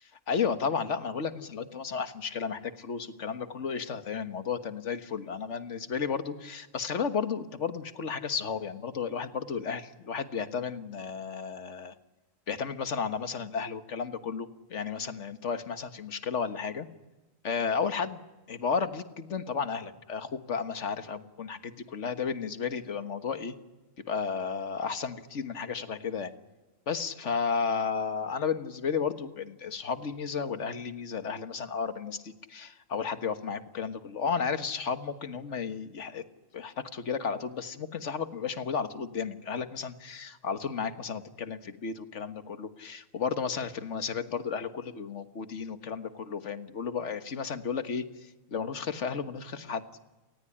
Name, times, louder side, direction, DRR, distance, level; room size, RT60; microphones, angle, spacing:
voice 1, 0.3-11.9 12.5-16.9 17.4-18.2 18.5-23.6 24.1-26.3 26.9-36.2 36.5-48.1 48.5-49.8, left 6 dB, 60° left, 10 dB, 1.7 m, -33 dB
29.5 x 19.0 x 10.0 m, 1.1 s
omnidirectional pair, 1.4 m